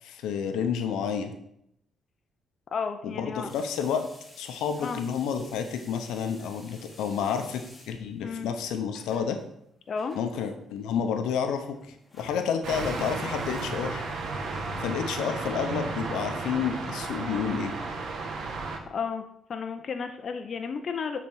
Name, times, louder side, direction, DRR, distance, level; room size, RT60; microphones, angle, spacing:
voice 1, 0.0-1.3 3.0-4.1 4.4-9.4 10.1-11.8 12.2-14.0 14.8-17.7, left 7 dB, 90° left, 6 dB, 0.7 m, -30 dB
voice 2, 2.7-3.5 4.8-5.0 8.2-8.5 9.9-10.2 18.9-19.2 19.5-21.2, left 5 dB, 50° left, 6 dB, 0.5 m, -32 dB
sound 1, 3.5-14.6, left 1 dB, 15° left, 1.6 m, -51 dB
sound 2, 12.6-18.8, right 3 dB, 75° right, 1.1 m, -33 dB
7.2 x 3.9 x 4.6 m, 0.75 s
cardioid pair, 90°, 0 cm